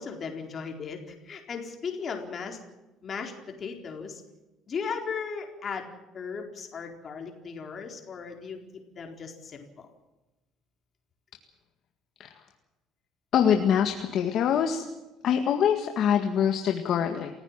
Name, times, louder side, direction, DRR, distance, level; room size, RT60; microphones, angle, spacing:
voice 1, 0.0-2.6 3.0-3.3 3.6-4.2 4.7-5.9 6.1-8.6 8.9-9.9, left 5 dB, 30° left, 3 dB, 4.2 m, -36 dB
voice 2, 13.3-14.8 15.2-17.3, left 8 dB, 45° left, 4 dB, 1.8 m, -24 dB
29.0 x 16.0 x 7.5 m, 1.1 s
cardioid pair, 165°, 0 cm